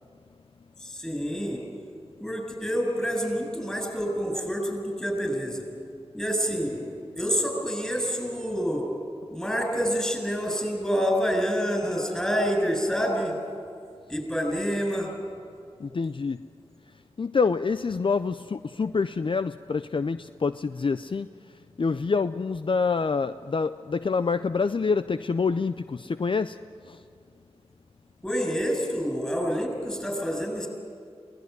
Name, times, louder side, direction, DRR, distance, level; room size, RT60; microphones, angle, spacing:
voice 1, 0.8-1.6 2.2-5.7 6.1-6.8 7.2-8.9 9.3-13.4 14.1-15.1 28.2-30.7, equal, 5° left, 2 dB, 7.2 m, -27 dB
voice 2, 15.8-16.4 17.2-21.3 21.8-26.6 26.9-27.0, left 4 dB, 50° left, 12 dB, 0.5 m, -26 dB
22.5 x 18.0 x 9.4 m, 2.3 s
wide cardioid pair, 55°, 11 cm